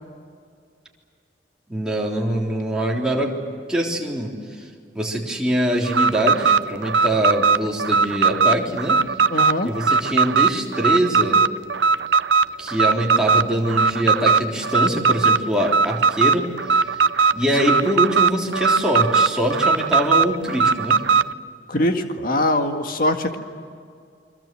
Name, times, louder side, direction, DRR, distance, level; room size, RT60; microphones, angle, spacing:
voice 1, 1.7-3.3 3.7-4.6 4.9-9.0 9.6-11.4 12.6-17.0 17.3-21.0, equal, 5° right, -3 dB, 3.6 m, -23 dB
Alarm, 5.9-21.3, right 5 dB, 80° right, 0.6 m, -19 dB
voice 2, 9.3-9.7 17.6-17.8 21.7-23.4, left 1 dB, 55° left, 5 dB, 1.9 m, -22 dB
29.0 x 24.0 x 7.8 m, 2.2 s
head